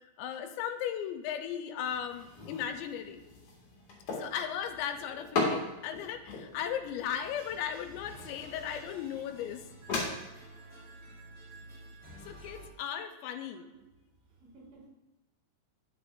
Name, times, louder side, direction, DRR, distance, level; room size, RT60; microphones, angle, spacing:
voice 1, 0.2-3.2 4.1-9.7 12.3-13.7, left 9 dB, 90° left, 7 dB, 2.8 m, -36 dB
sound 1, 1.8-10.1, left 3 dB, 50° left, 3.0 m, -39 dB
sound 2, 7.2-12.7, right 1 dB, 25° right, 1.3 m, -51 dB
voice 2, 13.6-14.9, right 2 dB, 80° right, -3 dB, 4.2 m, -57 dB
10.5 x 8.6 x 2.5 m, 0.94 s
omnidirectional pair, 5.0 m